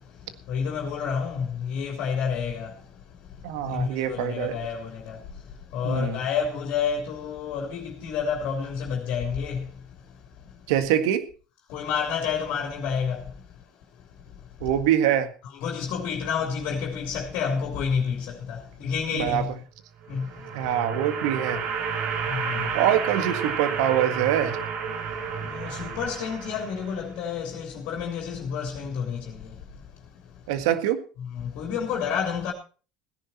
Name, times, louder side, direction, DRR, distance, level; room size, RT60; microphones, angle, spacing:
voice 1, 0.5-2.7 3.7-5.2 5.7-9.6 11.7-13.2 15.6-19.5 20.1-20.3 22.3-22.4 25.4-29.2 31.5-32.5, left 6 dB, 65° left, 3.2 m, -29 dB
voice 2, 3.4-4.5 5.8-6.2 10.7-11.2 14.6-15.3 19.1-19.4 20.5-21.6 22.7-24.6 30.5-31.0, right 10 dB, 80° right, 1.7 m, -24 dB
sound 1, 20.0-27.1, right 6 dB, 60° right, 3.3 m, -31 dB
16.5 x 10.5 x 4.3 m
supercardioid pair, 105°, 3 cm